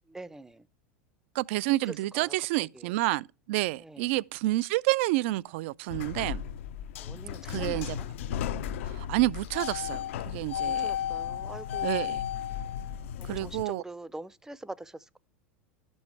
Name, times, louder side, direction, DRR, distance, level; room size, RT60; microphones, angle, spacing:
voice 1, 0.1-0.7 1.8-2.9 3.8-4.1 7.0-8.1 8.5-8.8 10.5-12.2 13.2-15.2, right 2 dB, 5° right, 0.5 m, -44 dB
voice 2, 1.3-6.4 7.5-8.0 8.8-10.9 11.8-12.2 13.2-13.8, right 19 dB, 65° right, 0.4 m, -29 dB
sound 1, 5.9-13.6, left 9 dB, 75° left, 0.6 m, -34 dB
12.5 x 5.4 x 4.6 m
hypercardioid pair, 95°, 7 cm